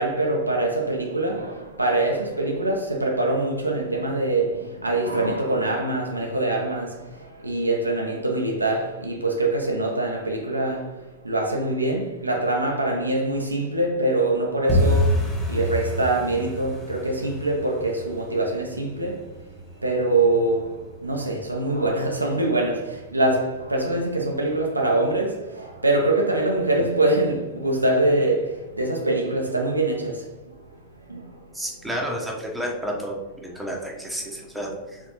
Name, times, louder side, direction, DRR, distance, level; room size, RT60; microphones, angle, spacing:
voice 1, 0.0-4.5 4.8-6.9 7.4-10.9 11.2-15.2 15.5-19.2 19.8-20.7 21.0-22.8 23.1-25.4 25.8-28.4 28.8-30.1 31.1-31.2, right 2 dB, 85° right, 0.6 m, -23 dB
sound 1, 14.7-25.4 25.7-26.4 26.6-26.9 27.2-27.6 27.9-28.0 28.5-29.0 29.3-29.4 29.9-30.0, left 1 dB, 15° left, 1.2 m, -29 dB
voice 2, 31.5-33.2 33.4-35.0, equal, 5° right, 1.0 m, -31 dB
4.3 x 3.4 x 3.0 m
figure-of-eight pair, 90°, 0 cm